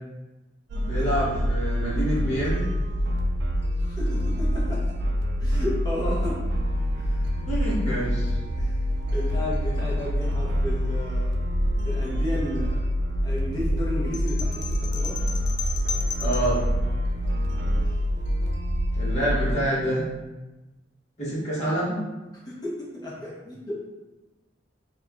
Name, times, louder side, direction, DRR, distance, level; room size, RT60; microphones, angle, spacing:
voice 1, 0.7-2.6 7.5-8.4 16.2-16.6 19.0-20.0 21.2-22.0, right 1 dB, 35° left, -7 dB, 1.2 m, -27 dB
sound 1, 0.7-19.5, equal, 65° right, 0.4 m, -26 dB
voice 2, 3.8-4.9 5.4-6.4 6.9-7.3 8.6-8.8 9.1-11.4 11.8-12.8 13.2-15.2 17.6-17.9 22.4-23.8, left 1 dB, 20° left, -5 dB, 0.9 m, -33 dB
sound 2, 14.1-16.6, left 5 dB, 60° left, 0.4 m, -35 dB
3.4 x 2.4 x 3.5 m, 1.1 s
head